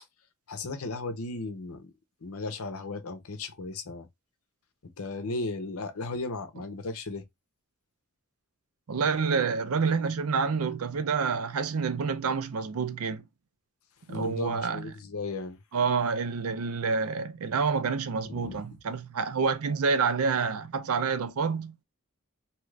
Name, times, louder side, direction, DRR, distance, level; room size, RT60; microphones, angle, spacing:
voice 1, 0.5-1.9 2.2-4.1 4.8-7.2 14.1-15.6 18.2-18.6, left 3 dB, 85° left, 0.7 m, -35 dB
voice 2, 8.9-13.2 14.1-14.9 15.7-21.8, right 5 dB, 90° right, 0.5 m, -28 dB
2.8 x 2.4 x 3.2 m
head